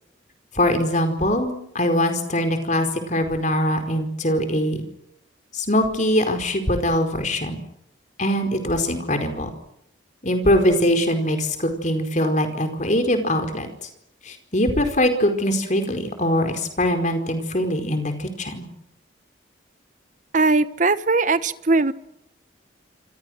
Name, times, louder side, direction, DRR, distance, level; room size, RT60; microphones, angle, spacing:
voice 1, 0.5-4.8 5.5-7.6 8.2-9.5 10.2-13.9 14.2-18.7, left 1 dB, 40° left, 6 dB, 4.7 m, -22 dB
voice 2, 20.3-21.9, right 3 dB, 40° right, 14 dB, 1.2 m, -19 dB
27.5 x 27.0 x 6.5 m, 0.77 s
head